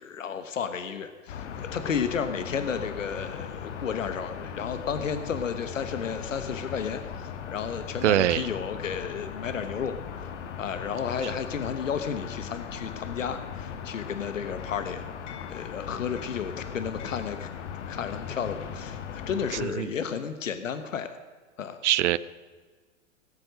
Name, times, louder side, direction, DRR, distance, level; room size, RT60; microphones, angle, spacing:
voice 1, 0.0-10.3 10.6-15.0 15.5-17.5 17.9-21.1 21.6-21.8, left 7 dB, 85° left, 10 dB, 1.2 m, -32 dB
sound 1, 1.3-19.6, left 7 dB, 65° left, 1.8 m, -38 dB
voice 2, 8.0-8.5 19.6-19.9 21.8-22.2, right 13 dB, 70° right, 19 dB, 0.7 m, -23 dB
18.5 x 7.9 x 6.4 m, 1.5 s
hypercardioid pair, 115°, 37 cm